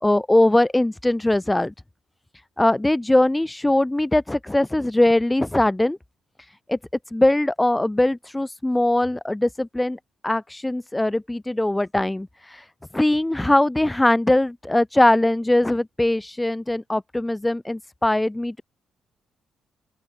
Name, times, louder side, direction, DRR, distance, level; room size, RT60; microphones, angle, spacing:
voice 1, 0.0-1.7 2.6-6.0 6.7-6.8 7.1-12.6 12.9-18.6, left 1 dB, 10° left, 2.3 m, -21 dB
open air
cardioid pair, 90°, 0 cm